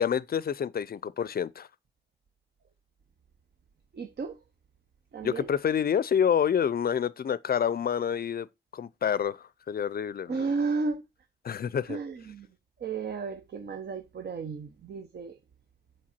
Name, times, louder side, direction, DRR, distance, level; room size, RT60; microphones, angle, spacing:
voice 1, 0.0-1.7 5.2-8.5 8.7-10.4 11.4-12.0, left 8 dB, 50° left, 0.4 m, -28 dB
voice 2, 3.9-4.4 5.1-5.5 10.3-11.0 11.9-12.5 12.8-15.4, right 4 dB, 55° right, 0.8 m, -33 dB
7.5 x 4.6 x 4.4 m
wide cardioid pair, 165°, 20 cm